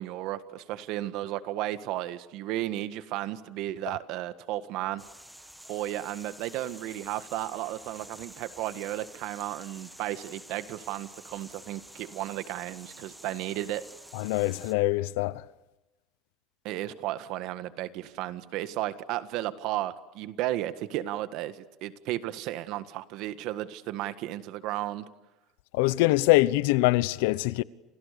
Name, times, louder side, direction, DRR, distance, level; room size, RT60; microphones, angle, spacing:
voice 1, 0.0-5.0 5.7-13.8 16.6-25.0, right 14 dB, 60° right, 1.7 m, -34 dB
sound 1, 5.0-14.7, equal, ahead, 1.4 m, -49 dB
voice 2, 14.1-15.4 25.7-27.6, left 19 dB, 85° left, 0.9 m, -24 dB
29.5 x 29.0 x 6.9 m
cardioid pair, 150°, 0 cm